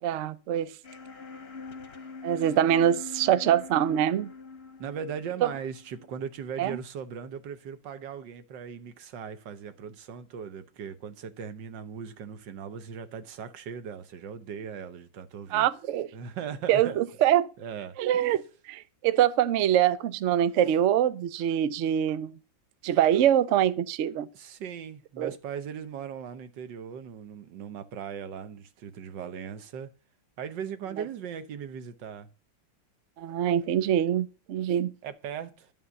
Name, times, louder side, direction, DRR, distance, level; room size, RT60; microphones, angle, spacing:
voice 1, 0.0-0.7 2.2-4.3 5.4-5.5 6.6-6.8 15.5-16.1 16.7-17.5 18.0-18.4 18.7-22.3 22.8-24.3 25.2-25.3 33.2-34.9, right 10 dB, 90° right, 0.6 m, -24 dB
sound 1, 0.8-6.7, left 4 dB, 40° left, 1.0 m, -44 dB
voice 2, 4.8-15.7 16.1-17.0 17.6-18.0 24.3-29.9 30.4-32.3 35.0-35.7, right 7 dB, 70° right, 1.6 m, -38 dB
11.0 x 5.5 x 7.0 m
omnidirectional pair, 2.1 m